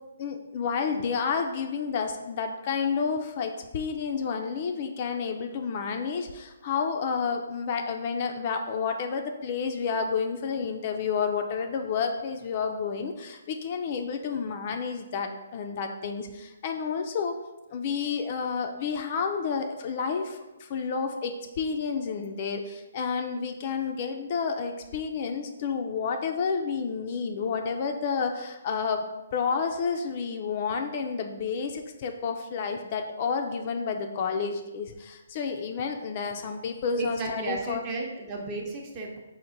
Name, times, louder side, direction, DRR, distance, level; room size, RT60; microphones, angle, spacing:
voice 1, 0.2-17.4 17.7-29.1 29.3-37.8, left 5 dB, 40° left, 4 dB, 0.3 m, -30 dB
voice 2, 36.9-39.2, right 2 dB, 25° right, 0 dB, 0.6 m, -33 dB
4.5 x 2.1 x 3.8 m, 1.0 s
hypercardioid pair, 150°, 0 cm